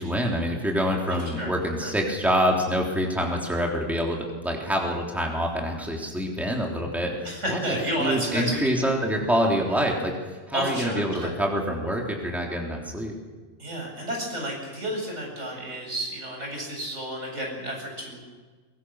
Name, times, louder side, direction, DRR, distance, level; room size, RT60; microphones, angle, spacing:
voice 1, 0.0-13.2, equal, ahead, -1 dB, 3.6 m, -26 dB
voice 2, 1.2-1.5 1.8-1.9 7.2-8.8 10.5-11.3 13.6-18.3, equal, 85° right, -1 dB, 7.9 m, -31 dB
23.0 x 22.0 x 6.5 m, 1.3 s
omnidirectional pair, 1.2 m